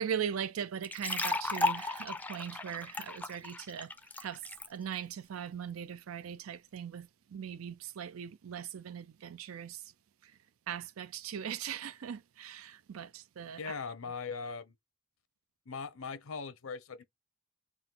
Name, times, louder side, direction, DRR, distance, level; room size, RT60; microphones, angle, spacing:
voice 1, 0.0-3.9 4.2-9.9 10.2-10.3 10.7-13.7, right 8 dB, 85° right, 0.4 m, -40 dB
sound 1, 0.8-4.7, left 2 dB, 10° left, 0.4 m, -35 dB
voice 2, 13.6-14.7 15.7-17.0, left 5 dB, 85° left, 0.7 m, -40 dB
3.9 x 2.4 x 3.8 m
head